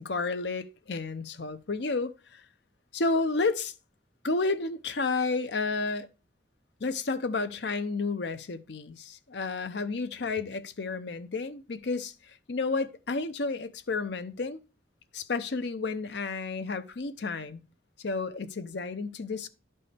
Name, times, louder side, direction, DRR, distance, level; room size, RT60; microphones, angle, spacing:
voice 1, 0.0-2.4 2.9-3.7 4.2-6.1 6.8-12.1 12.5-14.6 15.1-17.6 18.0-19.5, left 3 dB, 65° left, 0.7 m, -31 dB
11.0 x 5.4 x 3.3 m
head